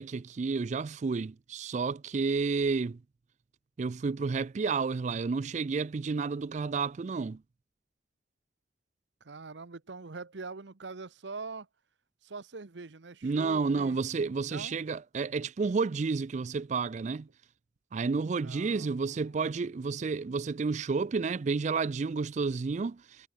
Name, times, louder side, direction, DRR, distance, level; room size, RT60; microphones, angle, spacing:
voice 1, 0.0-3.0 3.8-7.4 13.2-17.3 17.9-23.0, right 4 dB, 40° right, 0.4 m, -31 dB
voice 2, 9.2-11.7 12.2-14.0 14.4-14.8 18.4-19.5, right 4 dB, 75° right, 0.9 m, -43 dB
head